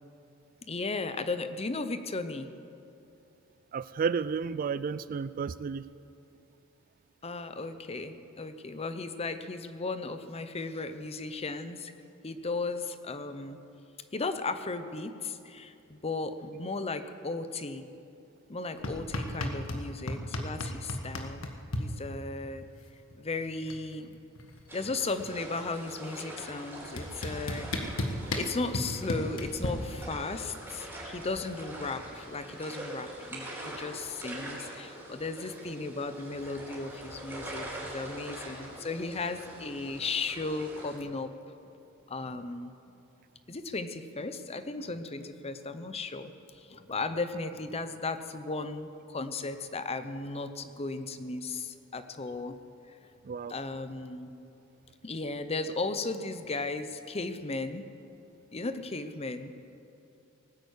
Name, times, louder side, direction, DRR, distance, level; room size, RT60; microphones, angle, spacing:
voice 1, 0.6-2.5 7.2-11.9 12.2-13.6 14.1-17.9 18.5-21.5 21.8-22.7 23.2-24.2 24.7-27.7 28.4-41.3 42.1-42.7 43.5-52.6 52.9-53.0 53.5-54.3 55.0-57.9 58.5-59.5, left 3 dB, 30° left, 10 dB, 0.7 m, -36 dB
voice 2, 3.7-5.9 53.2-53.5, right 5 dB, 40° right, 16 dB, 0.3 m, -32 dB
sound 1, 18.8-19.8 20.1-21.8 23.1-23.2 23.4-23.9 24.1-25.5 26.4-26.5 27.0-29.7, left 1 dB, 85° left, 1.5 m, -33 dB
sound 2, 24.7-41.0, right 1 dB, 10° right, 4.4 m, -44 dB
19.0 x 9.2 x 8.3 m, 2.7 s
head